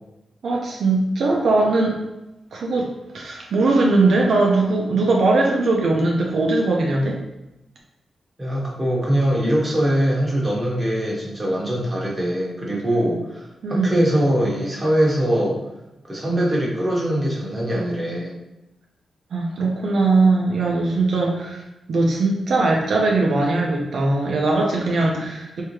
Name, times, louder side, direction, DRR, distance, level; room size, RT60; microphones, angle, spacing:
voice 1, 0.4-2.0 2.5-2.9 3.1-7.1 13.6-14.0 19.3-21.6 21.9-25.6, right 3 dB, 70° right, -2 dB, 0.5 m, -20 dB
voice 2, 8.4-15.6 16.0-18.4, right 1 dB, 20° right, -4 dB, 1.1 m, -22 dB
3.4 x 2.7 x 3.1 m, 0.94 s
cardioid pair, 100°, 0 cm